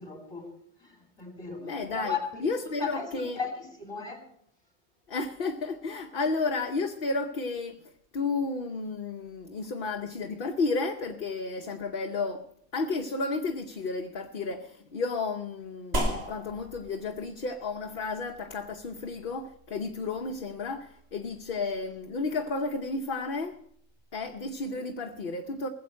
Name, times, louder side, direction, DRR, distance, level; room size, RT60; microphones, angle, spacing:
voice 1, 0.0-2.5 2.8-4.3, left 5 dB, 25° left, 2.8 m, -37 dB
voice 2, 1.6-2.1 2.4-3.4 5.1-7.8 8.1-12.5 12.7-23.6 24.1-25.7, left 3 dB, 55° left, 1.0 m, -32 dB
sound 1, 15.9-24.7, right 1 dB, 65° right, 2.6 m, -39 dB
20.0 x 7.7 x 6.4 m
omnidirectional pair, 1.1 m